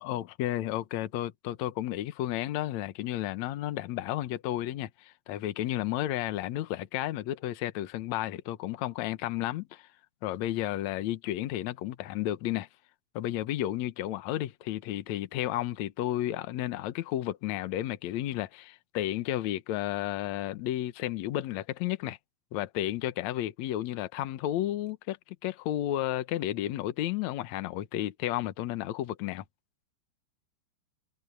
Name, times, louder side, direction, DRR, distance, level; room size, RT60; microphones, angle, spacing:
voice 1, 0.0-9.9 10.2-12.7 13.2-22.2 22.5-25.2 25.4-29.4, left 13 dB, 65° left, 2.0 m, -32 dB
omnidirectional pair, 4.2 m